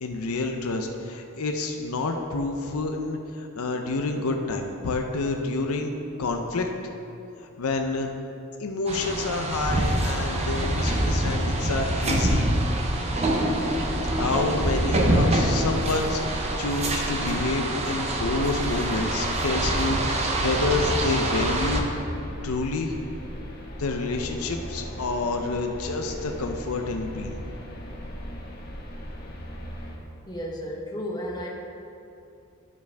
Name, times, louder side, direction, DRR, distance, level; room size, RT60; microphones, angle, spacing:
voice 1, 0.0-6.7 7.4-8.1 8.6-12.5 14.1-21.9 22.4-22.9 23.8-27.4, left 3 dB, 90° left, 4 dB, 0.6 m, -28 dB
sound 1, 8.9-21.8, right 1 dB, 30° right, 0.7 m, -25 dB
sound 2, 10.3-30.0, equal, 45° left, 1.2 m, -37 dB
voice 2, 30.3-31.5, equal, 20° left, -2 dB, 0.9 m, -33 dB
12.0 x 4.9 x 3.4 m, 2.7 s
head